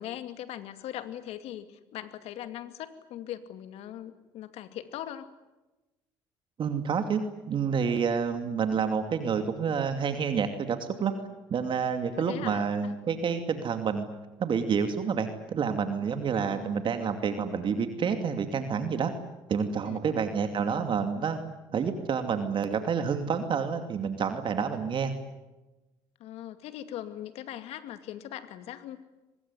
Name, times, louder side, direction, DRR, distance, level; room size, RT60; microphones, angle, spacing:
voice 1, 0.0-5.3 12.1-12.9 16.4-16.7 19.9-20.2 26.2-29.0, left 12 dB, 70° left, 10 dB, 2.4 m, -40 dB
voice 2, 6.6-7.2 7.5-11.1 11.5-14.1 14.4-19.1 19.5-21.4 21.7-25.1, right 6 dB, 50° right, 7 dB, 2.6 m, -28 dB
24.5 x 21.5 x 9.8 m, 1.1 s
supercardioid pair, 70°, 11 cm